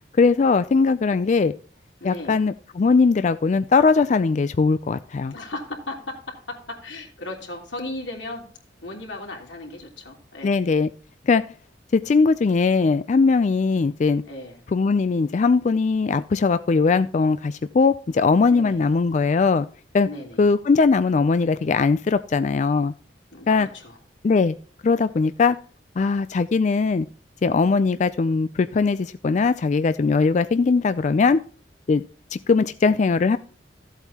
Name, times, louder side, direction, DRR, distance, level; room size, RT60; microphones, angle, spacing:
voice 1, 0.2-1.5 2.0-5.3 10.4-10.9 11.3-11.4 11.9-14.2 14.7-19.7 19.9-20.1 20.4-22.9 23.5-23.7 24.2-24.5 24.8-25.6 26.0-27.1 27.4-31.4 31.9-32.0 32.3-33.4, left 4 dB, 40° left, 12 dB, 0.3 m, -20 dB
voice 2, 2.0-2.4 5.3-8.5 8.8-10.5 14.3-14.6 18.5-18.8 20.0-20.5 23.3-23.9, left 2 dB, 90° left, 1 dB, 3.1 m, -36 dB
14.0 x 8.1 x 2.9 m, 0.42 s
head